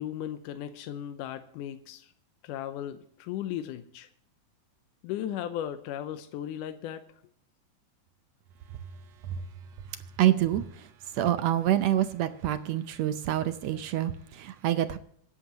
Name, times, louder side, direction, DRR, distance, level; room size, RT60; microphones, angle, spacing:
voice 1, 0.0-2.1 2.4-4.1 5.0-7.2, left 11 dB, 90° left, 2.3 m, -36 dB
voice 2, 9.9-15.0, right 12 dB, 75° right, 1.7 m, -27 dB
24.5 x 11.0 x 3.0 m
omnidirectional pair, 3.6 m